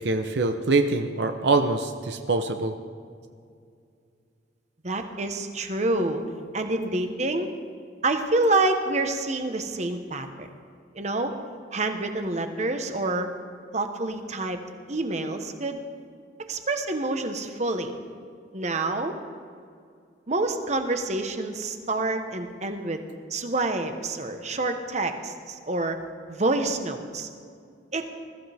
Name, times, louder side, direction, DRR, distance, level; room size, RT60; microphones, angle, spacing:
voice 1, 0.0-2.7, right 3 dB, 65° right, 6 dB, 0.7 m, -24 dB
voice 2, 4.8-6.2 6.5-7.5 8.0-10.5 10.9-11.3 11.7-13.3 13.7-14.6 14.9-15.8 16.5-18.0 18.5-19.1 20.3-23.0 23.3-26.0 26.3-27.3 27.9-28.1, right 2 dB, 40° right, 6 dB, 1.1 m, -27 dB
21.0 x 14.5 x 3.5 m, 2.3 s
head